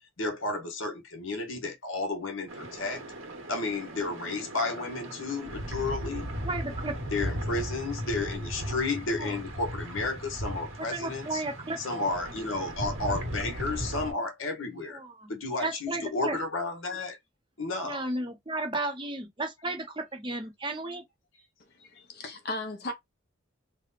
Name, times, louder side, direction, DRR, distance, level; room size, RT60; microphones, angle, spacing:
voice 1, 0.2-3.0 3.5-6.3 7.1-11.4 11.8-15.0 15.3-17.2 17.6-18.0, left 3 dB, 75° left, 1.2 m, -32 dB
sound 1, 2.5-14.1, equal, 85° right, 1.4 m, -37 dB
voice 2, 6.4-6.9 7.3-7.5 9.2-9.4 10.8-11.8 14.9-16.4 17.8-21.0, right 2 dB, 25° right, 0.7 m, -34 dB
voice 3, 21.8-22.9, left 2 dB, 50° left, 0.9 m, -36 dB
3.3 x 2.2 x 4.0 m
head